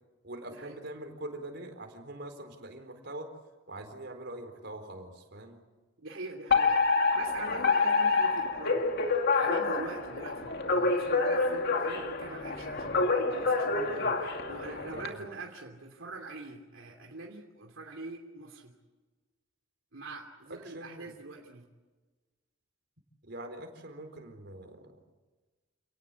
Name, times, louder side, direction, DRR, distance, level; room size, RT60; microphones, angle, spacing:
voice 1, 0.2-3.3 3.7-5.6 14.9-15.2 20.7-21.1 23.2-24.9, right 1 dB, 55° right, 5 dB, 4.4 m, -43 dB
voice 2, 6.0-18.7 19.9-21.6, right 3 dB, 75° right, 1 dB, 3.0 m, -44 dB
Alarm, 6.5-15.1, left 4 dB, 55° left, 2.5 m, -27 dB
29.5 x 18.5 x 8.3 m, 1.3 s
head